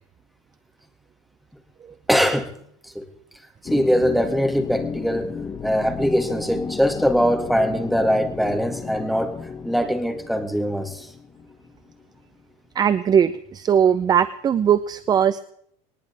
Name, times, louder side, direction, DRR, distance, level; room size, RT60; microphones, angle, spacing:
voice 1, 2.1-3.1 3.6-5.3 5.6-11.1, equal, ahead, 5 dB, 2.0 m, -22 dB
sound 1, 3.7-12.2, left 5 dB, 20° left, 1.1 m, -34 dB
voice 2, 12.8-15.4, right 8 dB, 25° right, 14 dB, 0.5 m, -19 dB
20.0 x 19.0 x 3.4 m, 0.68 s
supercardioid pair, 130°, 17 cm